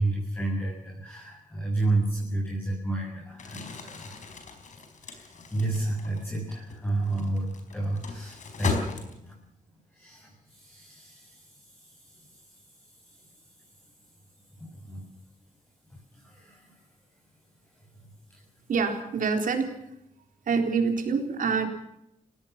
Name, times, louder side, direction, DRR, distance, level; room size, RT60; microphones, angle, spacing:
voice 1, 0.0-4.3 5.0-8.8 9.2-9.3 9.9-11.5 12.1-12.3 14.6-15.0 16.1-16.7 18.0-18.4, right 2 dB, 15° left, -5 dB, 7.4 m, -31 dB
Crumpling crinkling, 3.3-9.5, left 4 dB, 65° left, 4.7 m, -37 dB
voice 2, 18.7-19.8 20.5-21.7, right 5 dB, 80° right, 5 dB, 4.0 m, -26 dB
30.0 x 17.0 x 6.0 m, 0.80 s
wide cardioid pair, 165°, 14 cm